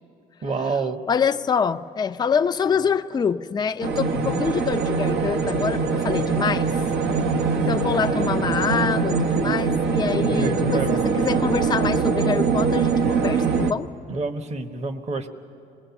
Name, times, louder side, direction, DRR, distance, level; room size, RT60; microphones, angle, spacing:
voice 1, 0.4-1.0 4.1-4.5 10.1-11.0 14.1-15.3, right 3 dB, 40° right, 8 dB, 1.3 m, -28 dB
voice 2, 1.1-6.7 7.5-13.9, left 6 dB, 25° left, 8 dB, 0.5 m, -25 dB
sound 1, 3.8-13.7, right 5 dB, 75° right, 1.2 m, -23 dB
26.0 x 20.5 x 7.1 m, 2.8 s
cardioid pair, 110°, 17 cm